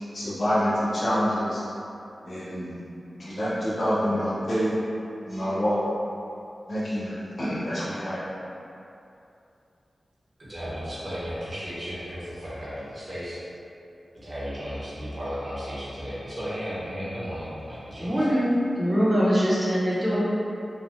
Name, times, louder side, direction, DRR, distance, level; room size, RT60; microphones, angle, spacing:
voice 1, 0.1-1.6 2.2-2.8 3.1-4.7 5.3-5.8 6.7-8.2, equal, 50° left, -9 dB, 0.7 m, -27 dB
voice 2, 10.4-13.4 14.2-18.3, equal, 45° right, -10 dB, 0.9 m, -34 dB
voice 3, 18.0-20.2, equal, 15° right, -9 dB, 0.7 m, -23 dB
3.1 x 2.2 x 2.6 m, 2.7 s
wide cardioid pair, 110°, 0 cm